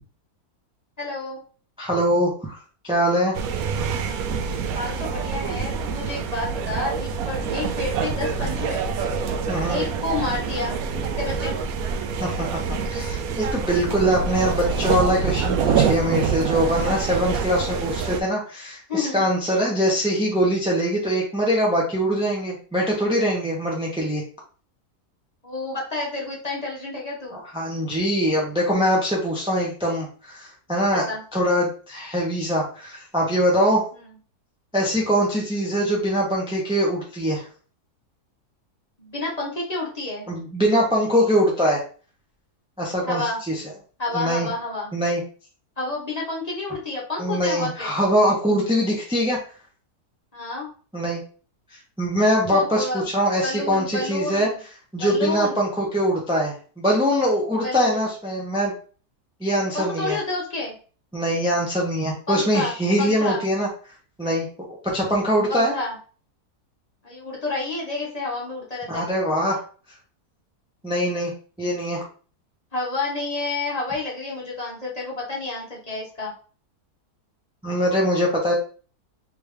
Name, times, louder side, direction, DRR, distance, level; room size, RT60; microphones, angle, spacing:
voice 1, 1.0-1.4 4.7-9.1 9.7-10.8 11.2-11.6 18.9-19.6 25.4-27.4 30.9-31.2 33.9-34.0 39.0-40.2 43.0-43.4 44.0-44.9 45.8-47.9 50.3-50.7 52.5-53.0 53.4-54.6 55.0-55.6 57.6-58.1 59.7-60.7 62.3-63.4 65.5-66.0 67.0-69.1 72.7-76.3, left 3 dB, 30° left, -4 dB, 0.9 m, -29 dB
voice 2, 1.8-2.6 2.8-3.3 9.5-9.8 12.2-12.6 12.9-24.2 27.3-31.0 31.3-33.8 34.7-37.5 40.3-41.8 42.8-43.6 44.1-44.5 44.9-45.2 47.2-49.4 50.9-51.2 52.0-54.5 54.9-58.7 59.4-60.2 61.1-63.7 64.2-64.5 64.8-65.7 68.9-69.6 70.8-71.3 71.6-72.0 77.6-78.5, equal, 5° right, -3 dB, 0.5 m, -22 dB
sound 1, 3.3-18.2, right 6 dB, 70° right, 1.0 m, -26 dB
3.4 x 3.3 x 3.3 m, 0.40 s
omnidirectional pair, 1.7 m